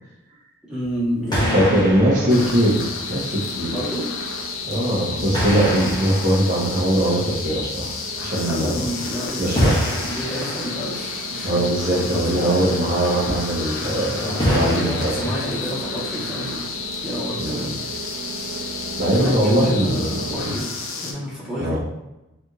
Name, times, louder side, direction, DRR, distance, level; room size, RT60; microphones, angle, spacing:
voice 1, 0.7-1.8 2.1-2.4 3.7-4.1 8.4-12.7 14.2-16.7 17.0-17.7 19.1-20.7 21.0-21.8, equal, 5° right, -11 dB, 1.3 m, -29 dB
sound 1, 0.8-1.1 1.3-3.4 4.4-4.5 5.3-7.5 9.6-11.2 14.4-16.0, equal, 20° left, 0.8 m, -26 dB
sound 2, 1.2-20.6, right 3 dB, 75° right, 0.3 m, -38 dB
voice 2, 1.5-3.8 4.6-7.9 8.2-8.7 9.4-9.8 11.4-15.2 17.4-17.6 19.0-20.2 21.6-21.8, right 1 dB, 40° right, -4 dB, 0.9 m, -21 dB
sound 3, 2.3-21.1, left 4 dB, 75° left, 0.5 m, -31 dB
3.4 x 2.8 x 2.4 m, 0.98 s
head